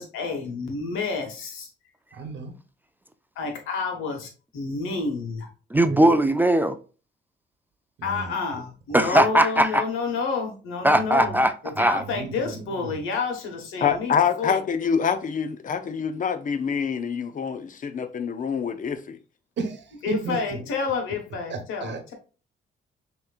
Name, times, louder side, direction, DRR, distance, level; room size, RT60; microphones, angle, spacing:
voice 1, 0.0-1.7 3.3-5.5 8.0-11.4 11.8-14.6 20.0-22.1, left 4 dB, 90° left, 1.3 m, -29 dB
voice 2, 2.1-2.5 5.9-6.1 8.0-8.3 11.0-11.1 11.8-13.0 19.6-20.6 21.5-22.1, right 4 dB, 65° right, 1.1 m, -34 dB
voice 3, 5.7-6.8 8.9-9.8 10.8-12.0, right 1 dB, 10° right, 0.4 m, -19 dB
voice 4, 13.8-19.2, left 7 dB, 40° left, 0.6 m, -26 dB
6.2 x 3.0 x 2.4 m
cardioid pair, 90°, 20 cm